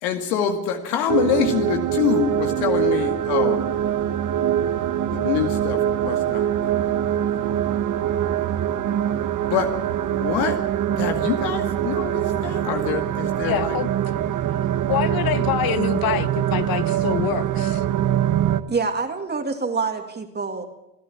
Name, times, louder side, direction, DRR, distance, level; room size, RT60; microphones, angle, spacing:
voice 1, 0.0-3.6 5.1-7.3 9.5-9.7 10.1-10.6 10.9-13.8, left 8 dB, 90° left, 2.3 m, -25 dB
sound 1, 1.1-18.6, right 10 dB, 40° right, 1.2 m, -23 dB
voice 2, 13.4-13.9 14.9-17.8, left 12 dB, 50° left, 1.1 m, -26 dB
voice 3, 18.7-20.6, right 4 dB, 20° right, 2.3 m, -26 dB
27.5 x 11.0 x 8.7 m
supercardioid pair, 110°, 47 cm